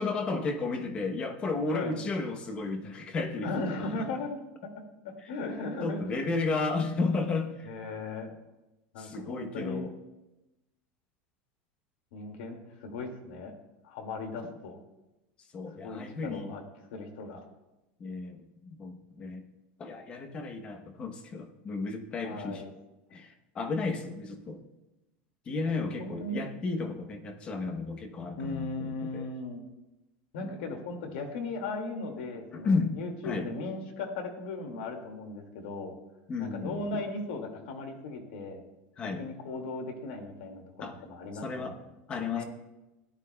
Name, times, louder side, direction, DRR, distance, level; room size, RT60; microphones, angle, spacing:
voice 1, 0.0-3.5 5.8-7.7 9.0-9.9 15.5-16.5 18.0-19.4 19.8-22.6 23.1-24.6 25.5-29.3 30.4-30.5 32.5-33.0 33.2-33.5 36.3-36.8 39.0-39.2 40.8-40.9 41.4-41.8 42.1-42.4, left 3 dB, 20° left, 7 dB, 0.8 m, -33 dB
voice 2, 3.4-4.5 5.0-6.3 7.7-8.3 8.9-9.9 12.1-13.5 13.8-14.8 15.8-16.6 16.9-17.4 22.2-22.7 25.8-26.4 28.4-29.6 30.3-35.9 36.4-38.6 39.2-41.9 42.3-42.4, left 3 dB, 80° left, 4 dB, 2.2 m, -37 dB
17.0 x 11.0 x 2.3 m, 1.0 s
supercardioid pair, 175°, 5 cm